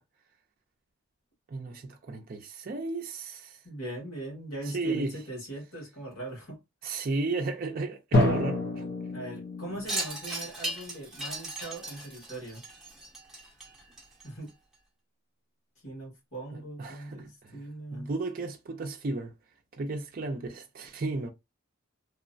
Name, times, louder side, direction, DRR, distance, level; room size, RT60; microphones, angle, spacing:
voice 1, 1.5-3.6 4.7-5.1 6.8-8.9 16.5-17.6 17.9-19.3 19.8-21.3, right 3 dB, 45° right, 0.4 m, -34 dB
voice 2, 3.6-6.6 7.0-7.1 9.1-12.6 14.2-14.5 15.8-18.1, right 1 dB, 85° left, 1.6 m, -40 dB
Drum, 8.1-10.0, left 1 dB, 50° left, 0.7 m, -27 dB
Wind chime, 9.9-14.5, right 1 dB, ahead, 0.8 m, -37 dB
3.0 x 2.1 x 2.5 m
head